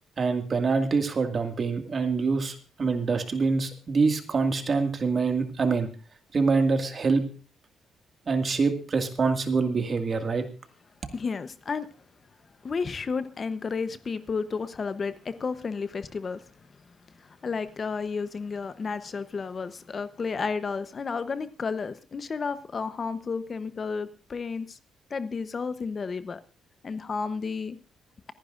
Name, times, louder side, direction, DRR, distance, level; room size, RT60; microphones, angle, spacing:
voice 1, 0.2-5.9 6.3-7.3 8.3-10.4, right 4 dB, 40° right, 2.0 m, -25 dB
voice 2, 11.1-11.9 12.6-16.5 17.2-24.8 25.1-26.4 26.8-27.8, left 5 dB, 40° left, 0.8 m, -32 dB
26.5 x 10.0 x 2.5 m
cardioid pair, 90°, 0 cm